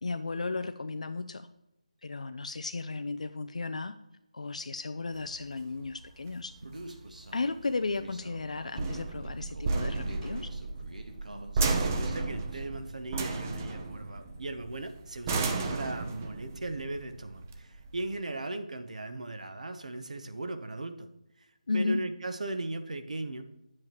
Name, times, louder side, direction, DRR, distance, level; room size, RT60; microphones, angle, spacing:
voice 1, 0.0-1.5 2.0-4.0 4.3-6.5 7.3-10.5 21.7-22.0, left 3 dB, 65° left, 9 dB, 0.5 m, -34 dB
sound 1, 5.2-18.2, right 3 dB, 20° right, 0.7 m, -34 dB
Human voice, 6.6-12.6, right 1 dB, 85° right, 1.4 m, -47 dB
voice 2, 11.7-21.1 21.7-23.4, right 2 dB, 65° right, 8 dB, 1.0 m, -37 dB
9.5 x 7.7 x 3.0 m, 0.87 s
figure-of-eight pair, 160°, 4 cm